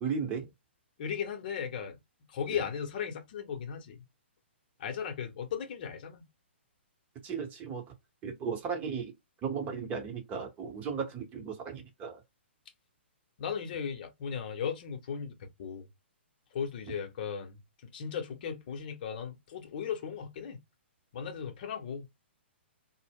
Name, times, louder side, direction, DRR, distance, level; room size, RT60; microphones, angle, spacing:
voice 1, 0.0-0.5 7.2-7.8 8.2-9.1 9.4-12.2, right 6 dB, 25° right, 0.8 m, -35 dB
voice 2, 1.0-2.0 2.3-4.0 4.8-6.3 13.4-15.9 16.5-17.6 17.9-20.6 21.1-22.1, left 7 dB, 45° left, 0.7 m, -36 dB
2.1 x 2.0 x 3.4 m
figure-of-eight pair, 120°, 6 cm